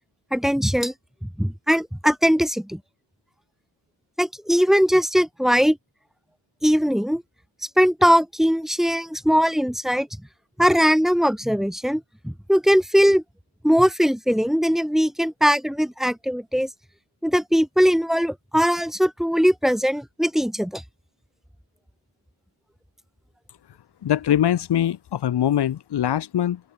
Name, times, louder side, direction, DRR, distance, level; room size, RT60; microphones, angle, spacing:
voice 1, 0.3-0.9 1.2-2.8 4.2-5.8 6.6-7.2 7.8-10.1 10.6-13.2 13.6-16.7 17.2-20.8, equal, ahead, 2.5 m, -20 dB
voice 2, 24.0-26.6, left 10 dB, 75° left, 6.2 m, -22 dB
open air
wide cardioid pair, 165°, 40 cm